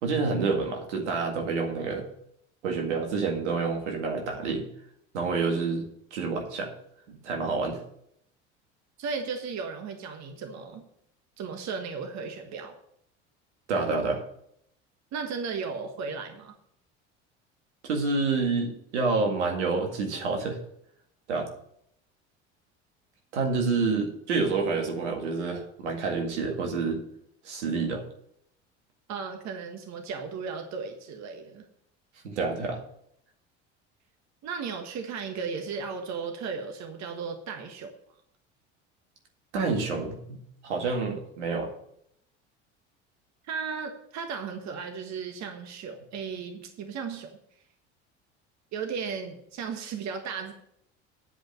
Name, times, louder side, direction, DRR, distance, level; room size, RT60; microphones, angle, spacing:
voice 1, 0.0-2.1 2.6-4.6 5.1-6.7 7.1-7.8 13.7-14.2 17.8-20.6 21.3-21.5 23.3-27.0 27.4-28.0 32.2-32.8 39.5-40.4 40.6-41.7, right 4 dB, 85° right, 2 dB, 2.0 m, -28 dB
voice 2, 9.0-10.8 11.4-12.8 15.1-16.5 29.1-31.6 34.4-37.9 43.5-47.3 48.7-50.5, right 5 dB, 50° right, 5 dB, 1.5 m, -35 dB
9.8 x 5.2 x 7.8 m, 0.72 s
hypercardioid pair, 70°, 34 cm